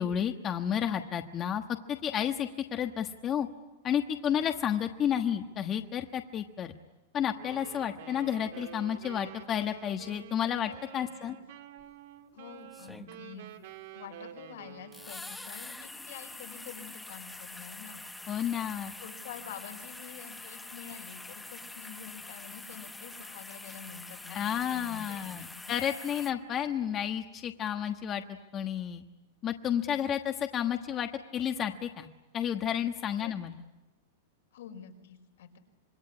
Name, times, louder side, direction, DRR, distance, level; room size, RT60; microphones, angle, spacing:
voice 1, 0.0-1.6 1.9-3.5 3.8-6.7 7.1-11.4 18.3-18.9 24.3-28.2 28.5-29.0 29.4-32.1 32.3-33.5, left 9 dB, 25° left, 6 dB, 1.3 m, -31 dB
Wind instrument woodwind instrument, 7.3-15.3, right 11 dB, 65° right, 2.5 m, -49 dB
voice 2, 11.0-11.3 12.3-18.0 19.0-25.8 29.9-30.2 33.1-33.3 34.5-35.6, left 8 dB, 80° left, 4 dB, 5.3 m, -48 dB
sound 1, 11.8-11.9 12.7-13.5 14.9-26.3, left 2 dB, 5° left, 1.1 m, -45 dB
26.5 x 22.0 x 9.9 m, 1.1 s
supercardioid pair, 145°, 0 cm